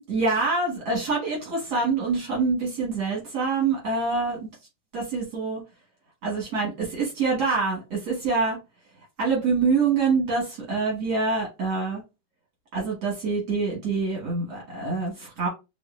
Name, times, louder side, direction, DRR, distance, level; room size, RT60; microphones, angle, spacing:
voice 1, 0.1-4.5 4.9-5.6 6.2-8.6 9.2-12.0 12.7-15.5, right 4 dB, 75° right, -3 dB, 2.2 m, -25 dB
4.7 x 2.5 x 2.5 m, 0.25 s
omnidirectional pair, 1.7 m